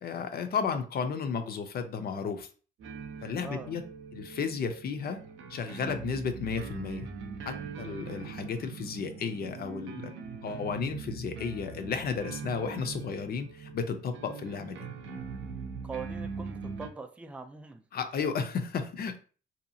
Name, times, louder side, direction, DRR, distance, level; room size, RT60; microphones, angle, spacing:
voice 1, 0.0-2.5 3.2-3.8 4.1-5.2 5.5-7.1 7.4-10.1 10.4-14.8 17.9-19.2, left 5 dB, 50° left, 7 dB, 0.5 m, -33 dB
sound 1, 2.8-16.9, right 5 dB, 75° right, 0.5 m, -42 dB
voice 2, 3.4-3.7 14.4-14.8 15.8-17.8, right 4 dB, 5° right, 6 dB, 0.3 m, -43 dB
2.8 x 2.3 x 2.7 m, 0.38 s
cardioid pair, 90°, 20 cm